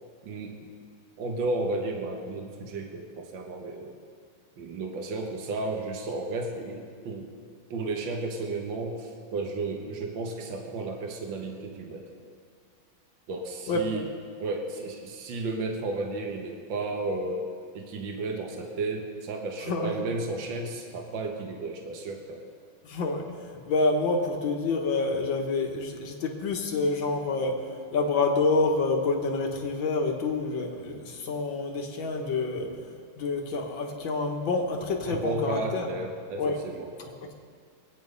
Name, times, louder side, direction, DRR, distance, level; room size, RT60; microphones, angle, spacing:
voice 1, 0.2-0.7 1.2-3.9 4.6-7.3 7.7-12.1 13.3-14.1 14.4-17.4 17.7-22.4 35.1-36.9, right 2 dB, 65° right, 2 dB, 2.0 m, -33 dB
voice 2, 13.7-14.0 19.6-19.9 22.8-27.6 27.9-32.7 33.2-35.9 36.4-36.6 37.2-37.3, left 3 dB, 70° left, 2 dB, 2.2 m, -27 dB
24.0 x 9.1 x 5.4 m, 2.2 s
omnidirectional pair, 2.2 m